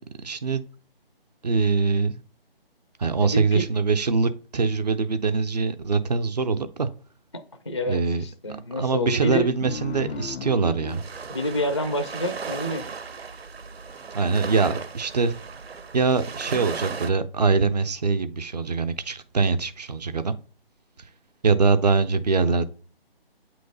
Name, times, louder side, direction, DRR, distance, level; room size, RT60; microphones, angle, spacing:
voice 1, 0.2-0.6 1.4-2.2 3.0-6.9 7.9-8.2 8.8-11.0 14.1-15.3 15.9-20.4 21.4-22.7, right 4 dB, 45° right, 10 dB, 0.6 m, -23 dB
voice 2, 3.2-3.6 7.3-9.5 11.3-12.9, equal, 30° left, 8 dB, 0.4 m, -28 dB
sound 1, 9.6-12.8, left 5 dB, 85° left, 0.5 m, -37 dB
sound 2, 10.9-17.1, right 5 dB, 85° right, 0.8 m, -36 dB
7.8 x 3.1 x 3.9 m, 0.39 s
figure-of-eight pair, 160°, 30 cm